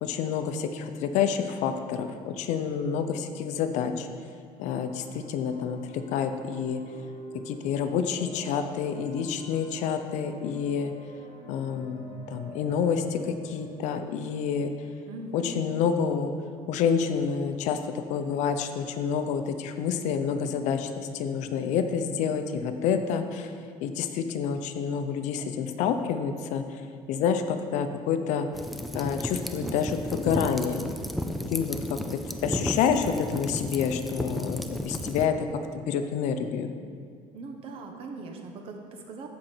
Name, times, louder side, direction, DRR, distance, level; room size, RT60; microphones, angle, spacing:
voice 1, 0.0-4.1 4.6-6.8 7.5-10.9 11.5-14.7 15.3-16.3 16.7-23.5 23.8-26.8 27.1-28.5 28.9-30.9 31.5-32.0 32.4-35.5 35.7-36.7, left 7 dB, 70° left, 8 dB, 0.7 m, -28 dB
sound 1, 4.5-16.2, right 2 dB, 80° right, 2.8 m, -48 dB
voice 2, 15.1-15.6 37.3-39.3, right 3 dB, 50° right, 3 dB, 1.1 m, -40 dB
sound 2, 28.5-35.3, left 1 dB, ahead, 0.4 m, -33 dB
14.0 x 5.3 x 4.5 m, 2.1 s
cardioid pair, 155°, 13 cm